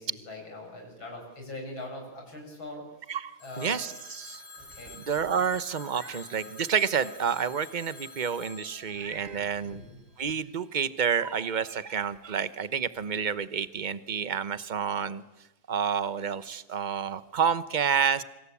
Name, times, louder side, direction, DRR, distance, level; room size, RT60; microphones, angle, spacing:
voice 1, 0.0-2.8 3.4-3.8 4.7-5.0 9.1-9.2 9.6-10.0, left 2 dB, 85° left, 1 dB, 8.1 m, -42 dB
voice 2, 3.1-4.4 5.1-9.8 10.2-15.2 15.7-18.2, right 7 dB, 30° right, 15 dB, 0.9 m, -29 dB
Telephone, 3.4-10.2, left 3 dB, 15° left, 3.8 m, -48 dB
Meow, 5.7-6.3 6.8-6.9 8.9-9.5 11.1-11.2 11.8-12.1, right 4 dB, 50° right, 3.1 m, -46 dB
27.0 x 25.5 x 8.6 m, 0.99 s
omnidirectional pair, 2.1 m